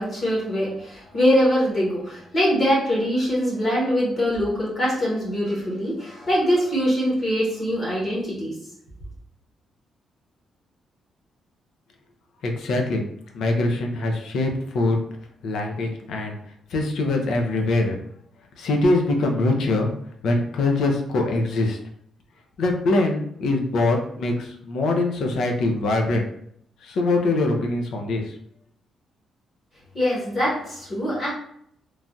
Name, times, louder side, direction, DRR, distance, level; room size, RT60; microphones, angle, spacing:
voice 1, 0.0-8.5 29.9-31.3, equal, 30° left, -5 dB, 1.0 m, -23 dB
voice 2, 12.4-13.0 13.3-15.0 15.4-16.4 16.7-18.0 18.6-19.9 20.2-21.8 22.6-26.3 26.8-28.3, left 2 dB, 70° left, 2 dB, 0.5 m, -23 dB
3.1 x 2.3 x 2.6 m, 0.68 s
cardioid pair, 155°, 0 cm